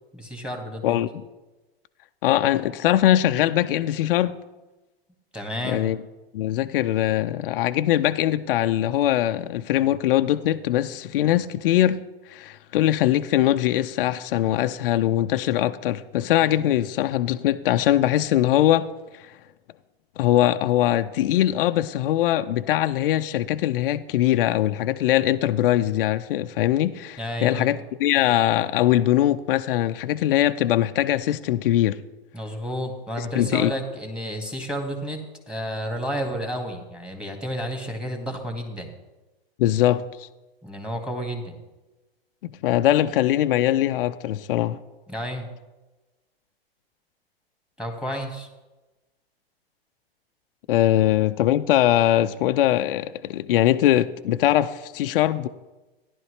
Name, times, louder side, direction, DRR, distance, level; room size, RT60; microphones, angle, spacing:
voice 1, 0.1-1.0 5.3-5.9 27.2-27.7 32.3-35.2 35.5-38.9 40.6-41.6 45.1-45.5 47.8-48.5, equal, 5° right, 1.9 m, -31 dB
voice 2, 2.2-4.4 5.6-6.0 6.3-12.0 12.3-18.9 19.1-19.3 20.2-32.0 33.2-33.7 39.6-40.3 42.4-44.8 50.7-55.5, left 13 dB, 60° left, 0.5 m, -21 dB
14.5 x 11.0 x 3.2 m
hypercardioid pair, 110°, 31 cm